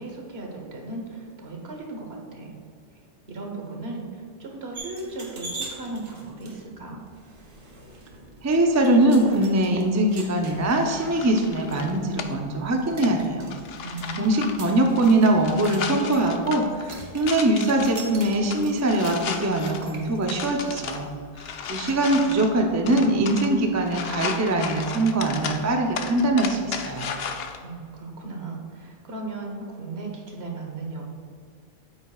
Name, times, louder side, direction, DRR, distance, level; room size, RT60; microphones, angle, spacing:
voice 1, 0.0-2.6 2.9-7.0 13.8-14.4 27.6-31.0, right 2 dB, 65° right, 1 dB, 1.4 m, -36 dB
sound 1, 4.7-22.2, right 2 dB, 80° right, 1.5 m, -44 dB
voice 2, 8.4-13.5 14.2-21.1 21.7-27.1, right 1 dB, 20° right, 2 dB, 0.5 m, -22 dB
sound 2, 10.6-27.6, left 6 dB, 65° left, 0.8 m, -36 dB
9.0 x 8.4 x 2.4 m, 2.1 s
omnidirectional pair, 1.2 m